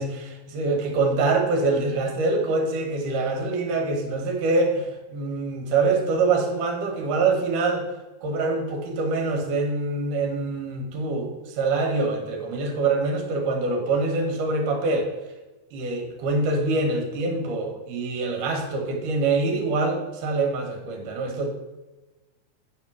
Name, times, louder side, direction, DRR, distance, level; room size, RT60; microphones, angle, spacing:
voice 1, 0.0-7.9 8.2-15.1 15.7-21.5, right 3 dB, 70° right, 2 dB, 2.6 m, -25 dB
9.1 x 3.6 x 5.9 m, 1.1 s
omnidirectional pair, 4.0 m